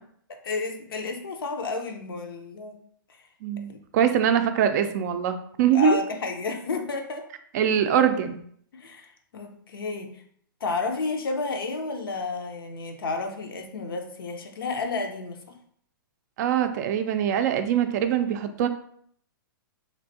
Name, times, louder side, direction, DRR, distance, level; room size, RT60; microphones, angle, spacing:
voice 1, 0.3-2.8 3.7-4.1 5.7-7.3 8.7-10.2 10.6-15.6, left 3 dB, 80° left, 5 dB, 0.6 m, -31 dB
voice 2, 3.4-6.0 7.5-8.4 16.4-18.7, right 8 dB, 50° right, 8 dB, 0.4 m, -23 dB
3.2 x 2.5 x 2.6 m, 0.63 s
hypercardioid pair, 120°, 12 cm